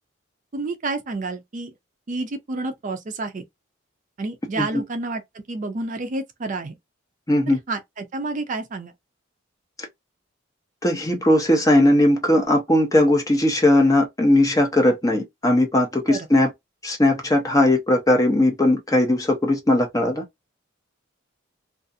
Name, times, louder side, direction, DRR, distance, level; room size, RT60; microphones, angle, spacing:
voice 1, 0.5-1.7 2.1-3.4 4.2-6.7 7.5-8.9 16.1-16.3, right 3 dB, 40° right, 0.4 m, -30 dB
voice 2, 7.3-7.6 10.8-16.5 16.8-20.2, left 1 dB, 15° left, 0.7 m, -18 dB
2.4 x 2.4 x 2.6 m
head